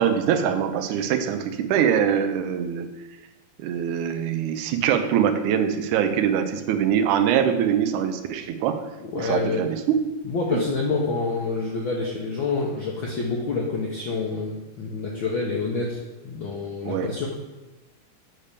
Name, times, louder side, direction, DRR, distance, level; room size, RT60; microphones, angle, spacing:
voice 1, 0.0-2.9 3.6-8.8 9.1-10.0 10.5-10.6 16.8-17.1, right 8 dB, 85° right, 7 dB, 2.2 m, -23 dB
voice 2, 9.0-9.7 10.2-16.0 16.2-17.3, left 4 dB, 75° left, -2 dB, 1.1 m, -27 dB
8.6 x 3.3 x 6.7 m, 1.1 s
omnidirectional pair, 3.4 m